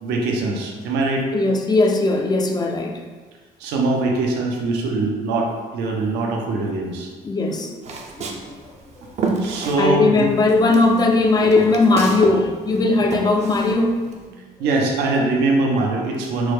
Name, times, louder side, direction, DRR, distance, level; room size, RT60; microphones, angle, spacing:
voice 1, 0.0-1.3 3.6-7.1 9.4-10.3 14.6-16.5, right 2 dB, 85° right, 0 dB, 0.6 m, -22 dB
voice 2, 1.3-3.0 6.6-6.7 7.2-7.8 8.2-8.3 9.8-14.1, left 2 dB, 25° left, 3 dB, 0.4 m, -18 dB
Walk footsteps, 7.8-10.2 10.5-12.4 12.7-14.2, right 4 dB, 40° right, 0.5 m, -28 dB
4.6 x 2.1 x 3.2 m, 1.4 s
cardioid pair, 110°, 17 cm